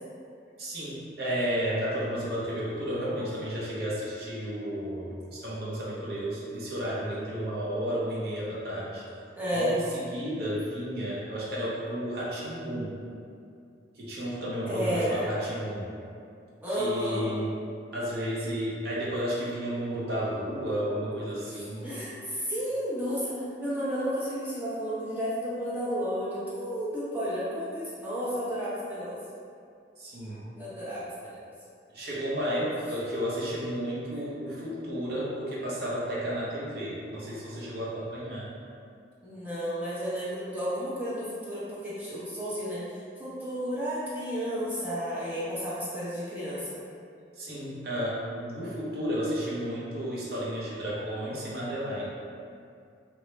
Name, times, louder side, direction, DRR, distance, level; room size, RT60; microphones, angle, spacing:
voice 1, 0.6-9.0 9.5-13.0 13.9-15.9 16.7-17.5 17.9-21.9 30.0-30.5 31.9-38.5 47.3-52.1, equal, 60° right, -7 dB, 0.7 m, -32 dB
voice 2, 9.4-9.8 14.7-15.3 16.6-17.3 21.5-29.2 30.6-31.4 39.2-42.8 43.2-46.7, equal, 10° right, -10 dB, 0.7 m, -32 dB
3.0 x 2.2 x 3.1 m, 2.4 s
head